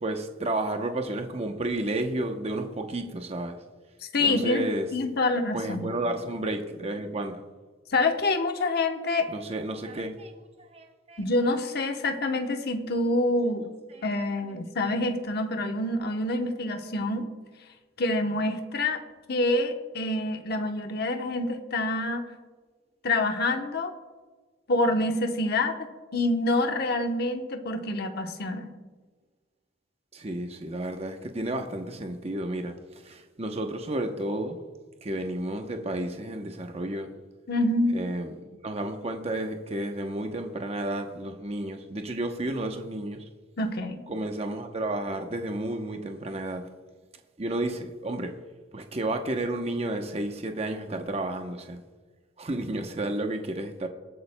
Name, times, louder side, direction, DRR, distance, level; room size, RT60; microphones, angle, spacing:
voice 1, 0.0-3.6 4.2-4.9 5.5-7.4 9.3-10.4 10.7-11.2 13.4-13.5 13.9-14.0 30.1-34.6 35.0-37.1 37.9-38.3 38.6-43.2 44.1-46.6 47.4-48.3 48.7-51.8 52.4-53.9, right 1 dB, 35° right, 5 dB, 0.8 m, -32 dB
voice 2, 4.1-5.9 7.9-9.3 11.2-13.6 14.0-17.3 18.0-19.0 19.3-22.2 23.0-23.9 24.7-28.7 37.5-38.0 43.6-44.0, left 2 dB, 55° left, 5 dB, 0.9 m, -27 dB
23.0 x 8.6 x 2.2 m, 1.4 s
head